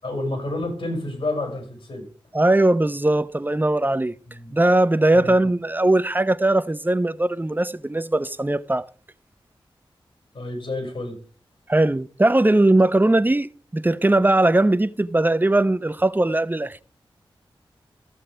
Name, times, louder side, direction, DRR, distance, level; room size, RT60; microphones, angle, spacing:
voice 1, 0.0-2.0 4.3-4.5 5.1-5.4 10.3-11.2, left 2 dB, 70° left, 5.8 m, -29 dB
voice 2, 2.3-4.1 4.5-8.8 11.7-16.8, right 2 dB, 20° right, 0.7 m, -19 dB
14.5 x 7.5 x 3.3 m
cardioid pair, 45°, 10 cm